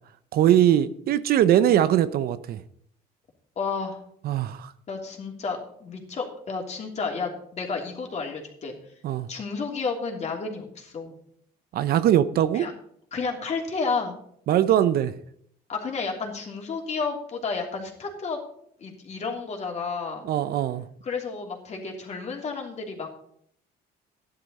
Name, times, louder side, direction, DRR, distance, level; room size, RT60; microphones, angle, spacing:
voice 1, 0.3-2.6 4.2-4.7 9.0-9.3 11.7-12.7 14.5-15.1 20.3-20.8, right 11 dB, 65° right, 14 dB, 0.7 m, -21 dB
voice 2, 3.6-4.0 4.9-8.7 9.3-11.1 12.5-12.7 13.1-14.2 15.7-18.4 18.8-20.2 21.0-23.1, left 4 dB, 40° left, 1 dB, 3.0 m, -31 dB
13.5 x 11.0 x 4.2 m, 0.67 s
cardioid pair, 110°, 17 cm